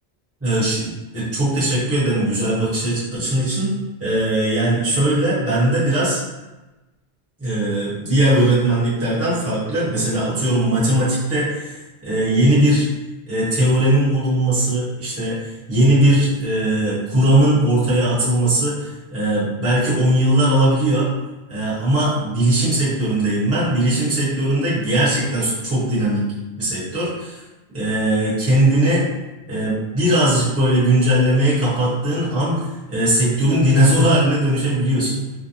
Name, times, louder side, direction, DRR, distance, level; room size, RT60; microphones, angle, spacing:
voice 1, 0.4-3.7 4.0-6.2 7.4-11.7 12.0-12.8 13.3-21.1 21.5-26.2 26.6-27.4 27.7-29.0 29.5-35.2, right 1 dB, 15° right, -10 dB, 0.9 m, -19 dB
2.6 x 2.0 x 2.7 m, 1.1 s
omnidirectional pair, 1.1 m